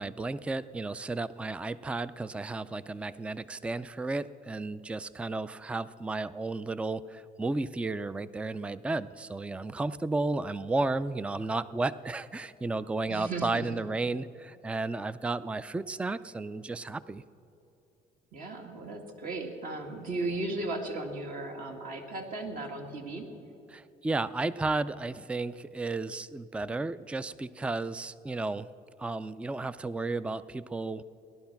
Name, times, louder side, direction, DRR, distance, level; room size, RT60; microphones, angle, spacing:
voice 1, 0.0-17.2 23.7-28.7 29.0-31.0, right 3 dB, 5° right, 17 dB, 0.3 m, -33 dB
voice 2, 13.1-13.8 18.3-23.3, right 2 dB, 55° right, 3 dB, 2.0 m, -36 dB
17.0 x 11.5 x 5.8 m, 2.9 s
cardioid pair, 110°, 17 cm